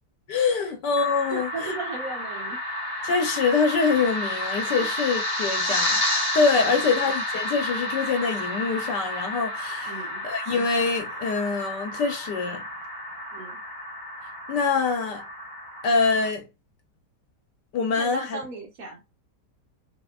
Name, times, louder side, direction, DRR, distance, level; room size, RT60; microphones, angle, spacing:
voice 1, 0.3-1.7 3.0-6.0 6.3-12.6 14.5-15.2 15.8-16.4 17.7-18.4, left 4 dB, 80° left, 1.6 m, -25 dB
sound 1, 1.0-16.3, left 1 dB, 30° left, 1.5 m, -31 dB
voice 2, 1.3-2.6 4.8-4.9 6.7-7.0 9.9-10.2 13.3-13.6 17.9-19.1, right 3 dB, 55° right, 1.5 m, -36 dB
6.4 x 3.1 x 2.5 m
omnidirectional pair, 1.8 m